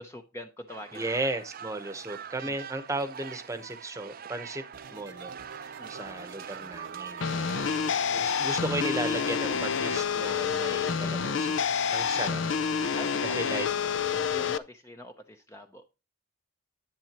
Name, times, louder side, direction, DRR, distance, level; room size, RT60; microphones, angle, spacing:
voice 1, 0.0-1.2 2.4-2.6 5.8-5.9 12.1-12.3 13.0-13.5 14.3-15.9, equal, 15° left, 0.7 m, -44 dB
sound 1, 0.7-7.8, right 7 dB, 45° right, 0.5 m, -44 dB
voice 2, 0.9-4.6 4.9-5.3 5.9-7.3 7.7-7.8 8.1-11.6 11.9-12.4 13.3-13.7, right 2 dB, 15° right, 1.0 m, -35 dB
sound 2, 4.7-10.1, right 4 dB, 60° right, 0.9 m, -47 dB
sound 3, 7.2-14.6, left 6 dB, 60° left, 0.5 m, -28 dB
10.5 x 8.7 x 2.9 m
head